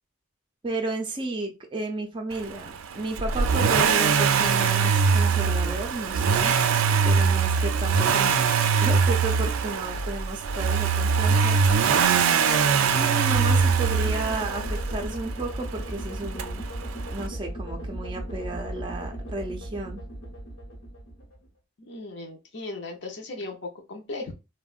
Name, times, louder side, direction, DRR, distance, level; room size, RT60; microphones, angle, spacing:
voice 1, 0.6-6.6 7.0-8.4 8.8-11.6 12.9-16.6 17.1-20.0, right 2 dB, 25° right, 2 dB, 0.4 m, -33 dB
Accelerating revving vroom, 3.2-15.1 16.4-16.5, right 6 dB, 90° right, 0.4 m, -22 dB
sound 1, 13.3-21.5, right 1 dB, 75° left, 1.0 m, -36 dB
voice 2, 21.8-24.3, left 2 dB, 55° left, 3 dB, 0.6 m, -37 dB
3.5 x 2.1 x 2.3 m, 0.28 s
head